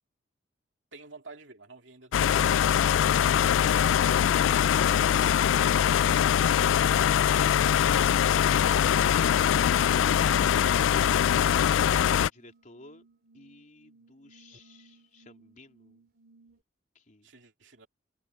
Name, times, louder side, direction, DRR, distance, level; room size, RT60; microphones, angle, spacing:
voice 1, 0.9-2.5 17.2-17.9, right 3 dB, 70° right, 2.8 m, -48 dB
sound 1, 2.1-12.3, left 9 dB, 75° left, 0.3 m, -23 dB
voice 2, 9.0-13.1 13.3-16.0 17.0-17.3, left 2 dB, 45° left, 3.7 m, -51 dB
sound 2, 12.3-16.6, right 3 dB, 55° right, 4.1 m, -60 dB
head